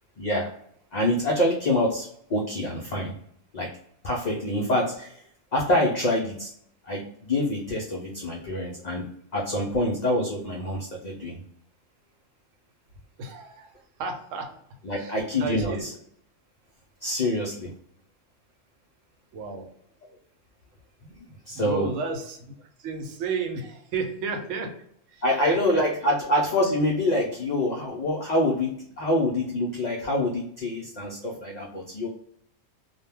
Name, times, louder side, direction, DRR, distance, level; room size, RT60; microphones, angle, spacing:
voice 1, 0.2-0.5 0.9-3.2 3.5-3.7 4.0-5.2 5.5-6.5 6.8-9.0 9.3-11.4 14.8-15.9 17.0-17.7 21.0-21.9 25.2-32.1, left 1 dB, 80° left, -2 dB, 0.4 m, -26 dB
voice 2, 13.2-13.7 14.0-14.5 14.9-15.8 19.3-19.7 21.5-22.5 22.8-24.7 25.1-25.8, right 4 dB, 80° right, 5 dB, 1.0 m, -32 dB
2.2 x 2.1 x 3.3 m, 0.66 s
omnidirectional pair, 1.3 m